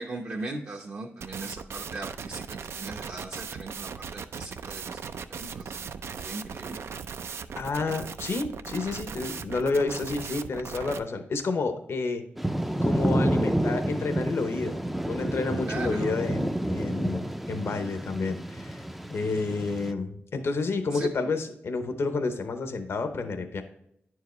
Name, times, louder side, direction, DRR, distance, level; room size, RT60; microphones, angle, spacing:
voice 1, 0.0-5.9 6.2-6.9 15.7-16.1 20.9-21.3, right 3 dB, 55° right, -1 dB, 0.7 m, -39 dB
sound 1, 1.2-11.0, right 6 dB, 85° right, 0.4 m, -38 dB
voice 2, 7.6-12.2 12.8-18.8 19.1-23.6, left 3 dB, 70° left, 7 dB, 0.7 m, -30 dB
Thunder / Rain, 12.4-19.9, right 1 dB, 5° right, 0.3 m, -29 dB
9.8 x 4.7 x 3.1 m, 0.75 s
wide cardioid pair, 110°, 4 cm